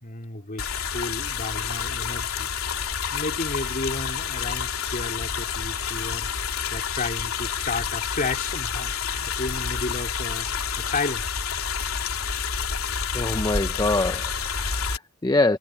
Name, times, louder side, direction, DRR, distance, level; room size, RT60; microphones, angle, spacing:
voice 1, 0.0-2.5 3.1-6.3 6.7-10.5 10.8-11.3, left 3 dB, 40° left, 3.0 m, -32 dB
sound 1, 0.6-15.0, left 6 dB, 85° left, 3.0 m, -29 dB
voice 2, 13.1-15.6, left 2 dB, 20° left, 0.6 m, -25 dB
head